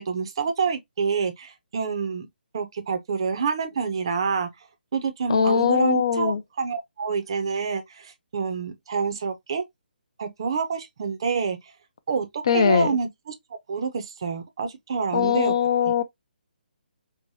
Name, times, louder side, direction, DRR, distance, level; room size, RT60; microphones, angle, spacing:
voice 1, 0.0-2.3 2.5-4.5 4.9-9.6 10.2-11.6 12.1-15.5 15.8-15.9, right 5 dB, 30° right, 0.5 m, -27 dB
voice 2, 5.3-6.4 12.5-12.9 15.1-16.0, left 7 dB, 30° left, 0.3 m, -21 dB
4.7 x 2.1 x 2.7 m
hypercardioid pair, 175°, 6 cm